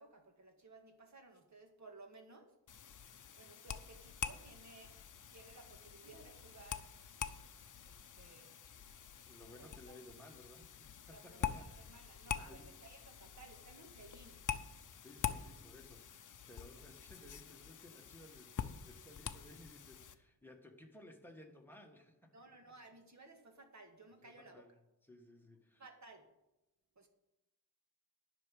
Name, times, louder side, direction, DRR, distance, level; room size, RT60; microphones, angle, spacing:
voice 1, 0.0-2.5 3.4-4.9 5.3-6.8 7.8-8.5 9.6-9.9 11.1-14.4 22.3-24.6 25.8-26.3 27.0-27.1, right 3 dB, 45° right, 4 dB, 2.0 m, -58 dB
sound 1, 2.7-20.2, left 8 dB, 50° left, 0.8 m, -46 dB
voice 2, 9.3-12.0 12.4-12.7 15.0-22.3 24.2-24.7 25.0-25.8, left 1 dB, 5° left, 2 dB, 1.5 m, -58 dB
11.0 x 6.0 x 8.3 m, 0.94 s
wide cardioid pair, 125°, 40 cm